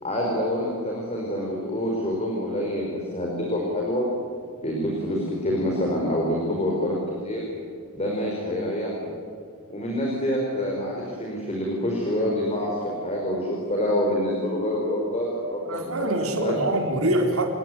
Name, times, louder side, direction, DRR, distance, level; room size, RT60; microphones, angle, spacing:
voice 1, 0.0-4.1 4.6-7.5 7.9-9.1 9.7-16.1 16.4-16.6, left 1 dB, 30° left, -2 dB, 5.2 m, -27 dB
voice 2, 15.6-17.5, right 1 dB, 80° right, 4 dB, 4.2 m, -24 dB
30.0 x 19.0 x 9.5 m, 2.3 s
head